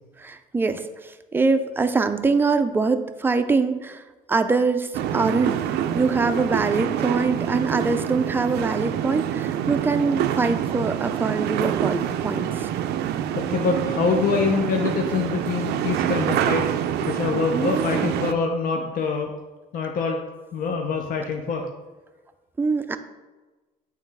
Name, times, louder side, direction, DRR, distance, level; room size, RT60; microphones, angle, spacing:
voice 1, 0.2-4.0 4.3-12.7 17.5-18.1 22.6-23.0, right 4 dB, 15° right, 8 dB, 0.4 m, -24 dB
sound 1, 4.9-18.3, right 10 dB, 75° right, 0.4 m, -26 dB
voice 2, 13.3-16.7 17.0-19.3 19.7-20.2 20.5-21.7, left 5 dB, 55° left, 2 dB, 0.7 m, -25 dB
8.5 x 3.2 x 3.4 m, 1.2 s
cardioid pair, 110°, 17 cm